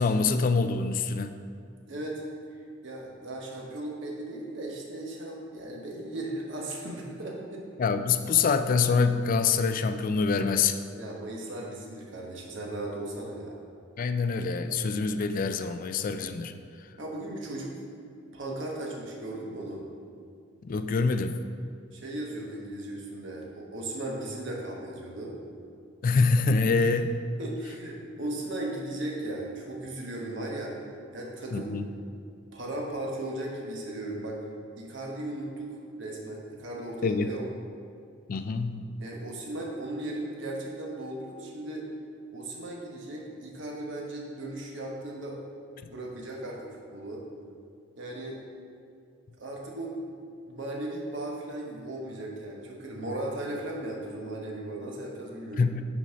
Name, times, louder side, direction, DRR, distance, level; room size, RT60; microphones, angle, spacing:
voice 1, 0.0-1.3 7.8-10.8 14.0-16.5 20.6-21.3 26.0-27.2 31.5-31.9 37.0-37.3 38.3-38.8 55.6-55.8, left 4 dB, 45° left, 9 dB, 0.3 m, -25 dB
voice 2, 1.9-2.2 2.8-7.6 11.0-13.6 17.0-17.7 18.3-19.8 21.9-25.4 26.8-26.9 27.4-30.7 31.1-31.7 32.5-34.4 34.8-37.4 39.0-41.9 42.3-45.4 45.8-47.2 48.0-48.4 49.4-50.0 50.5-55.7, right 1 dB, 65° right, -2 dB, 1.1 m, -37 dB
6.1 x 4.1 x 5.6 m, 2.4 s
head